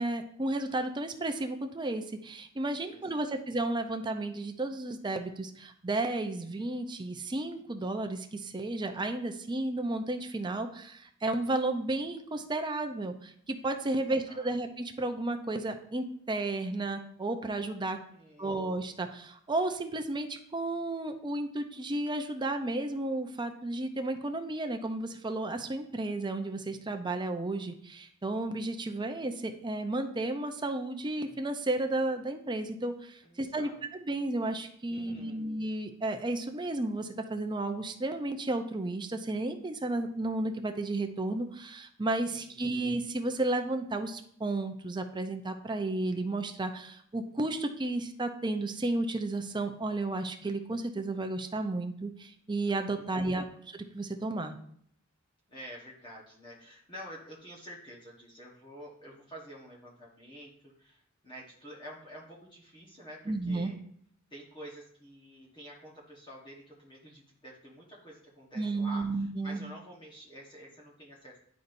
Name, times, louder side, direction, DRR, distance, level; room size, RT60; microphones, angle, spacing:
voice 1, 0.0-18.0 18.4-33.7 34.1-54.6 63.3-63.7 68.5-69.6, right 2 dB, 20° right, 6 dB, 0.6 m, -33 dB
voice 2, 2.8-3.3 13.9-14.5 17.9-18.6 33.2-33.8 34.9-35.5 42.3-42.7 52.9-53.4 55.5-63.8 64.3-71.4, equal, 20° left, -4 dB, 1.2 m, -49 dB
10.5 x 4.1 x 2.6 m, 0.64 s
head